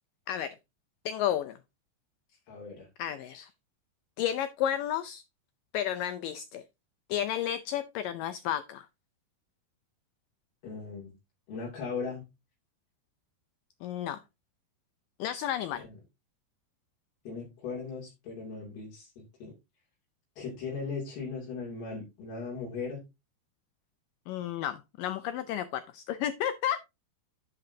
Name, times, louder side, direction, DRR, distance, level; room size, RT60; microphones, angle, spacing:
voice 1, 1.1-1.6 3.0-3.5 4.2-5.2 5.7-6.6 7.1-8.9 13.8-14.2 15.2-15.8 24.3-26.8, left 10 dB, 90° left, 1.9 m, -32 dB
voice 2, 2.5-2.9 10.6-11.1 11.5-12.2 15.8-16.0 17.2-19.1 19.4-19.5 20.4-23.0, left 4 dB, 75° left, 4.5 m, -38 dB
10.0 x 7.8 x 2.7 m
omnidirectional pair, 4.6 m